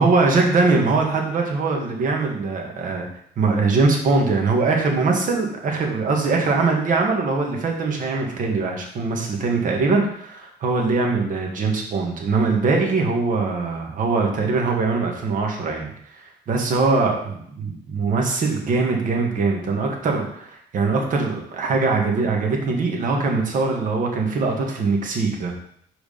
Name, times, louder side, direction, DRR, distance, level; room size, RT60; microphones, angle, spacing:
voice 1, 0.0-3.1 3.4-25.5, right 3 dB, 50° right, 1 dB, 1.7 m, -22 dB
5.1 x 4.9 x 5.4 m, 0.67 s
cardioid pair, 110°, 17 cm